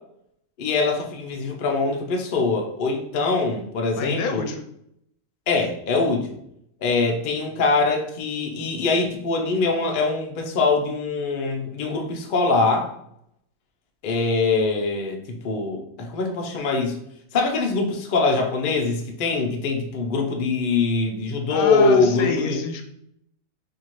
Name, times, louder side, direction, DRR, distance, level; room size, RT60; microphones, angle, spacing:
voice 1, 0.6-4.4 5.5-6.4 6.8-12.9 14.0-17.0 17.3-22.6, left 3 dB, 50° left, 1 dB, 0.6 m, -23 dB
voice 2, 4.0-4.6 21.5-22.8, left 5 dB, 80° left, 5 dB, 1.0 m, -27 dB
4.3 x 2.7 x 3.0 m, 0.75 s
omnidirectional pair, 1.5 m